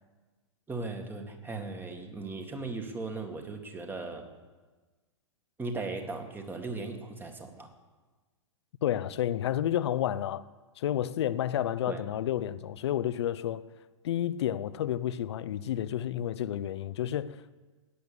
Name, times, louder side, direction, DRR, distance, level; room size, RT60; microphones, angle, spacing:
voice 1, 0.7-4.3 5.6-7.7 11.9-12.0, right 3 dB, 15° right, 2.0 m, -37 dB
voice 2, 8.8-10.4 10.8-13.6 14.0-17.6, left 11 dB, 60° left, 0.7 m, -30 dB
16.5 x 10.5 x 6.9 m
figure-of-eight pair, 105°, 16 cm